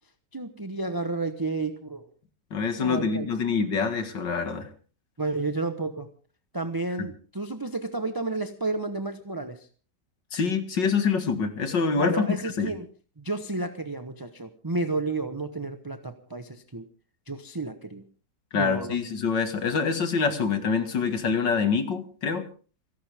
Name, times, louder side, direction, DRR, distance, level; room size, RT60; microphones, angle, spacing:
voice 1, 0.3-2.1 2.8-3.3 5.2-6.1 6.5-9.6 12.0-12.9 13.2-16.8 17.3-18.0 18.5-19.0, right 3 dB, 15° right, 8 dB, 0.9 m, -31 dB
voice 2, 2.5-4.7 7.0-7.1 10.3-12.7 18.5-22.5, left 5 dB, 90° left, 8 dB, 2.6 m, -26 dB
28.5 x 11.5 x 3.6 m, 0.39 s
omnidirectional pair, 1.9 m